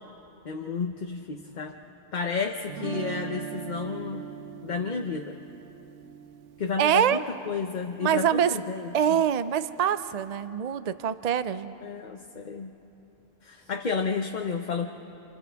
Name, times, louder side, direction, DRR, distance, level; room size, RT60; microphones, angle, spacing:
voice 1, 0.4-1.8 2.1-4.3 4.6-5.4 6.6-8.9 11.8-12.7 13.4-14.9, left 5 dB, 45° left, 3 dB, 0.8 m, -31 dB
Guitar, 2.7-8.7, right 9 dB, 85° right, 1.0 m, -41 dB
voice 2, 6.8-7.2 8.0-8.6 8.9-11.7, right 9 dB, 55° right, 13 dB, 0.5 m, -24 dB
30.0 x 27.0 x 3.5 m, 2.9 s
omnidirectional pair, 1.2 m